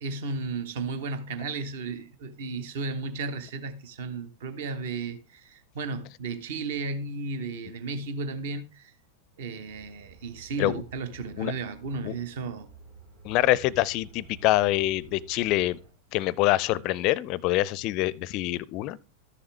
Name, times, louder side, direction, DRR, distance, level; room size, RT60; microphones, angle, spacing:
voice 1, 0.0-8.9 9.4-12.7, right 4 dB, 55° right, 1.0 m, -34 dB
sound 1, 9.7-15.9, right 4 dB, 70° right, 3.9 m, -51 dB
voice 2, 13.2-15.8 16.1-19.0, left 16 dB, 40° left, 0.4 m, -25 dB
13.0 x 7.0 x 3.2 m
figure-of-eight pair, 90°, 0 cm